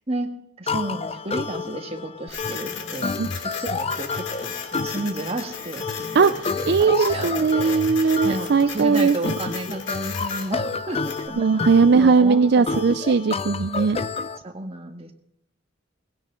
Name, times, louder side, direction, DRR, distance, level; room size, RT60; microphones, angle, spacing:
voice 1, 0.6-3.1 3.6-11.1 12.0-12.8 14.4-15.1, right 2 dB, 30° right, 3 dB, 1.7 m, -32 dB
sound 1, 0.7-14.4, left 4 dB, 30° left, 0.6 m, -30 dB
Printer, 2.3-11.3, left 6 dB, 70° left, 2.5 m, -36 dB
voice 2, 6.7-9.1 11.4-14.0, right 5 dB, 60° right, 11 dB, 0.5 m, -18 dB
19.5 x 16.0 x 3.8 m, 0.73 s
head